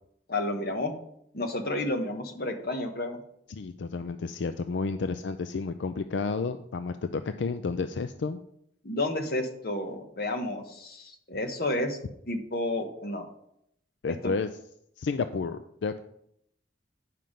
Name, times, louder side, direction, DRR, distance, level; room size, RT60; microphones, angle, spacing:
voice 1, 0.3-0.9 1.3-3.2 8.8-12.0 12.3-13.2 14.1-14.3, left 1 dB, 55° left, 4 dB, 1.2 m, -31 dB
voice 2, 3.5-8.4 14.0-14.5 15.0-16.0, left 4 dB, 80° left, 10 dB, 0.4 m, -31 dB
9.3 x 5.8 x 5.1 m, 0.74 s
head